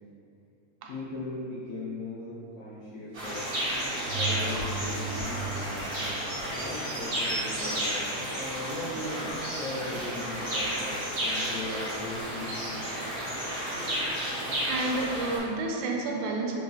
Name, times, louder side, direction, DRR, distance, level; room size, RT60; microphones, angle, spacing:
voice 1, 0.9-3.6 4.1-5.9 6.5-12.8, left 2 dB, 75° left, -11 dB, 1.4 m, -38 dB
sound 1, 3.1-15.4, equal, 65° right, 0.8 m, -32 dB
sound 2, 4.0-9.0 9.5-9.6, right 4 dB, 55° left, 2.1 m, -38 dB
voice 2, 14.7-16.6, right 2 dB, 90° right, 1 dB, 2.2 m, -30 dB
5.5 x 3.9 x 2.3 m, 2.7 s
omnidirectional pair, 3.7 m